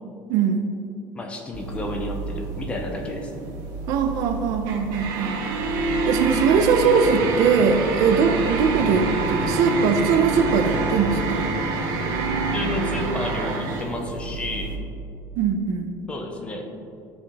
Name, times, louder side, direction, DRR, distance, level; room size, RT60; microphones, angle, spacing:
voice 1, 0.3-0.7 3.9-5.4 6.1-11.5 15.4-15.9, right 5 dB, 60° right, 7 dB, 0.6 m, -21 dB
voice 2, 1.1-3.5 12.5-14.8 16.1-16.6, left 2 dB, 15° left, 3 dB, 0.7 m, -31 dB
sound 1, 1.5-14.8, right 3 dB, 90° right, 1.6 m, -27 dB
12.0 x 5.2 x 3.5 m, 2.6 s
cardioid pair, 180°, 7 cm